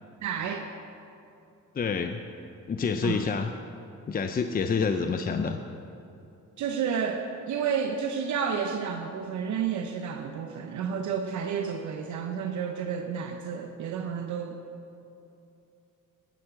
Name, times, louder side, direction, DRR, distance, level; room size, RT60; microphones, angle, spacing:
voice 1, 0.2-0.7 3.0-3.2 6.6-14.6, right 7 dB, 70° right, 4 dB, 0.8 m, -31 dB
voice 2, 1.7-2.2 2.7-3.5 4.1-5.6, left 5 dB, 30° left, 7 dB, 0.5 m, -27 dB
12.0 x 9.1 x 5.9 m, 2.7 s
cardioid pair, 90°, 30 cm